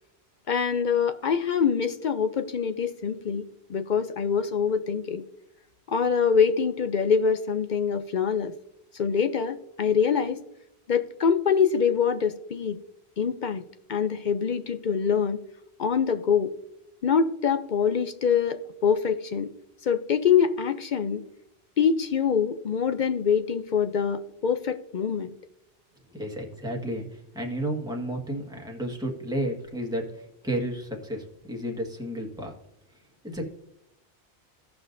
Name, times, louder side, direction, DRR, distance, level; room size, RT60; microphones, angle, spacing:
voice 1, 0.5-3.4 3.7-5.2 5.9-8.5 8.9-10.4 10.9-12.8 13.2-13.6 13.9-15.4 15.8-16.5 17.0-19.5 19.8-21.2 21.8-25.3, left 6 dB, 55° left, 9 dB, 0.6 m, -24 dB
voice 2, 26.1-32.5 33.2-33.5, right 1 dB, 5° right, 0 dB, 1.5 m, -32 dB
17.0 x 5.7 x 2.6 m, 0.82 s
omnidirectional pair, 1.1 m